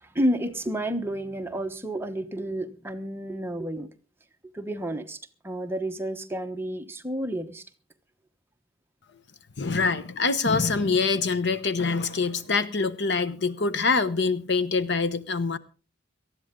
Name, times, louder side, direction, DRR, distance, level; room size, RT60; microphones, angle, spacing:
voice 1, 0.0-3.9 4.5-5.2 5.4-7.6, right 1 dB, 10° right, 1.1 m, -30 dB
voice 2, 9.6-15.6, left 4 dB, 55° left, 1.0 m, -25 dB
18.5 x 13.5 x 3.7 m
head